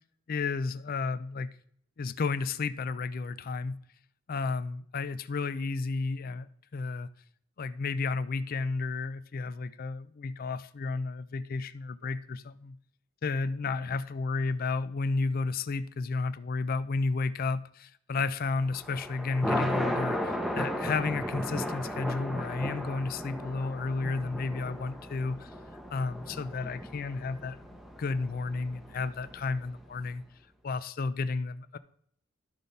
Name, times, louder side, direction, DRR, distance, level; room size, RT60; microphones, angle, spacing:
voice 1, 0.3-1.5 2.0-3.8 4.3-6.5 6.7-7.1 7.6-12.8 13.2-25.5 25.9-27.6 28.0-30.2 30.6-31.8, left 4 dB, 45° left, 0.4 m, -32 dB
Thunder, 18.6-29.9, equal, ahead, 0.8 m, -36 dB
12.0 x 4.0 x 5.4 m
head